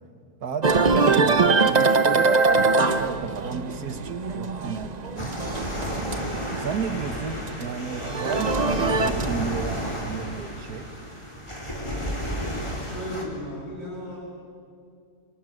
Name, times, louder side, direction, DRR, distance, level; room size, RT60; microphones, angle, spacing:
voice 1, 0.4-6.0 6.6-10.9, right 6 dB, 70° right, 10 dB, 1.9 m, -33 dB
sound 1, 0.6-6.9 7.2-9.4, right 4 dB, 30° right, 0.9 m, -23 dB
sound 2, 5.2-13.3, equal, 15° left, 4.2 m, -32 dB
voice 2, 11.8-12.2 12.7-14.2, left 1 dB, 45° left, -9 dB, 8.1 m, -36 dB
28.5 x 26.0 x 7.8 m, 2.4 s
omnidirectional pair, 1.7 m